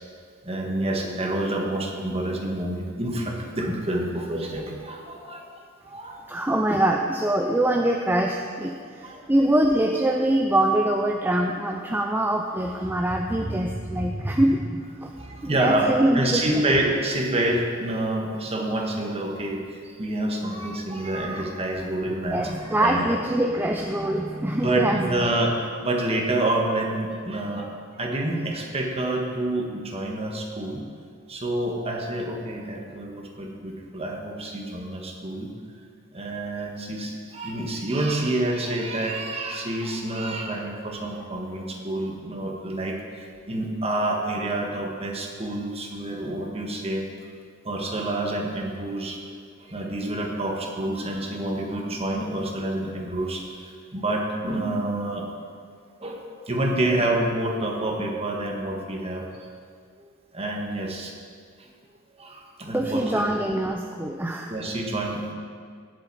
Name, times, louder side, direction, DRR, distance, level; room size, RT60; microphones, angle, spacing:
voice 1, 0.4-5.4 5.9-6.2 9.0-9.2 15.2-19.6 20.0-23.0 24.0-24.1 24.5-27.7 28.0-30.8 31.3-35.5 36.1-43.0 43.5-47.0 47.6-49.2 49.7-53.4 53.9-55.3 56.0-59.3 60.3-61.1 62.2-63.3 64.5-65.3, right 1 dB, 30° right, 0 dB, 1.6 m, -28 dB
voice 2, 6.3-15.2 15.4-16.4 22.3-25.2 62.7-64.5, right 1 dB, 10° right, 2 dB, 0.5 m, -24 dB
17.0 x 7.8 x 4.3 m, 2.1 s
head